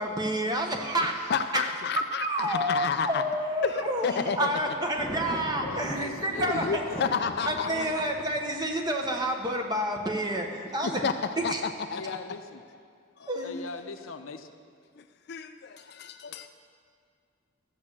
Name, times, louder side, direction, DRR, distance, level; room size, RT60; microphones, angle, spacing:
voice 1, 0.0-1.3 2.0-6.8 7.5-11.0 11.4-11.6 13.3-13.6, right 1 dB, 20° right, 2 dB, 1.1 m, -29 dB
voice 2, 1.3-3.2 3.6-4.5 6.3-7.7 10.8-11.1 11.4-12.2 15.3-16.5, left 6 dB, 55° left, 8 dB, 0.4 m, -30 dB
Thunder, 2.9-9.3, equal, 5° left, 1.1 m, -41 dB
voice 3, 5.6-8.0 11.9-12.6 13.2-14.5, left 4 dB, 85° left, 7 dB, 0.8 m, -41 dB
13.5 x 7.4 x 7.4 m, 2.2 s
head